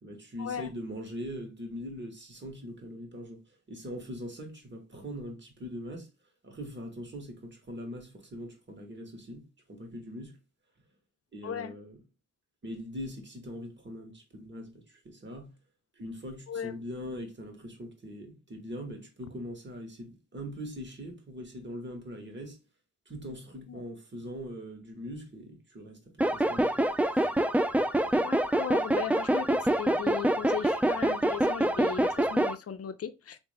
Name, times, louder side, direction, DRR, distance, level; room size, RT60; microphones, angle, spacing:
voice 1, 0.0-3.4 3.7-6.1 6.4-10.4 11.3-12.0 12.6-15.5 16.0-22.6 23.1-26.7 27.1-27.3, equal, 35° right, 1.3 m, -41 dB
voice 2, 11.4-11.7 16.5-16.8 23.7-23.8 28.1-33.4, left 8 dB, 50° left, 0.6 m, -37 dB
sound 1, 26.2-32.5, right 1 dB, 5° right, 0.3 m, -26 dB
3.4 x 2.6 x 3.3 m
cardioid pair, 50°, 31 cm